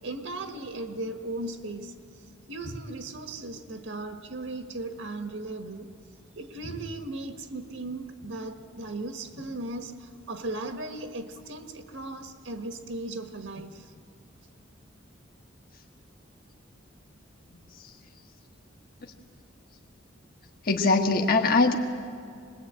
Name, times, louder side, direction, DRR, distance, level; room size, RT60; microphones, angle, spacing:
voice 1, 0.0-1.9 2.5-5.9 6.3-13.9, right 2 dB, 80° right, 5 dB, 1.4 m, -37 dB
voice 2, 20.6-21.8, left 3 dB, 50° left, 3 dB, 1.4 m, -21 dB
25.5 x 21.0 x 8.8 m, 2.3 s
head